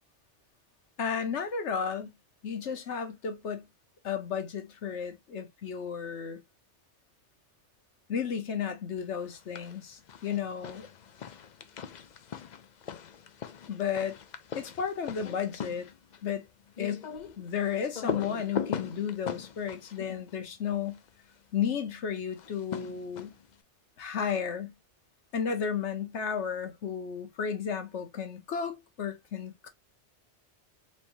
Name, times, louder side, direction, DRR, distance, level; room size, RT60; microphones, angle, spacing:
voice 1, 1.0-2.1 2.4-3.7 4.0-6.4 8.1-10.9 13.7-14.2 14.5-15.9 16.2-16.5 16.8-17.1 17.4-21.0 21.5-23.3 24.0-24.7 25.3-29.7, left 7 dB, 75° left, 1.3 m, -33 dB
sound 1, 9.2-9.8 10.1-21.1 22.3-23.5, left 7 dB, 50° left, 0.6 m, -40 dB
4.3 x 3.4 x 2.6 m
omnidirectional pair, 1.2 m